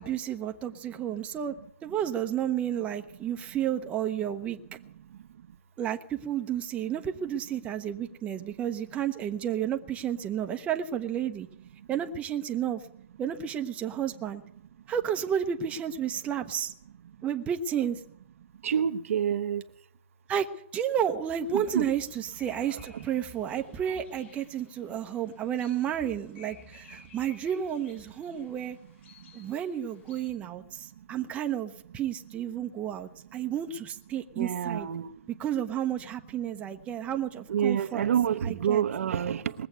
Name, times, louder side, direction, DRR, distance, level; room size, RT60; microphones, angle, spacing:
voice 1, 0.0-1.5 1.8-4.6 5.8-11.5 11.9-12.8 13.2-14.4 14.9-16.7 17.2-18.0 20.3-20.5 20.7-28.8 29.3-34.9 35.4-38.0 38.4-38.8, right 9 dB, 15° right, 0.9 m, -31 dB
voice 2, 18.6-19.6 21.5-21.9 34.4-35.1 37.5-39.7, right 9 dB, 70° right, 0.8 m, -27 dB
sound 1, 21.2-30.3, left 5 dB, 50° left, 6.7 m, -57 dB
20.0 x 8.0 x 8.0 m
hypercardioid pair, 150°, 8 cm